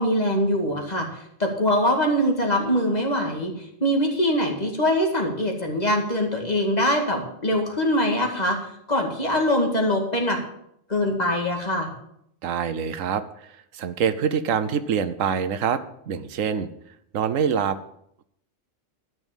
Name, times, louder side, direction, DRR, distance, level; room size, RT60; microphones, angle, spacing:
voice 1, 0.0-8.6 8.9-10.4 10.9-11.9, equal, 30° left, 2 dB, 2.2 m, -23 dB
voice 2, 12.4-13.2 13.7-16.7 17.1-17.8, right 7 dB, 90° right, 12 dB, 1.2 m, -25 dB
12.5 x 6.3 x 7.3 m, 0.72 s
omnidirectional pair, 1.3 m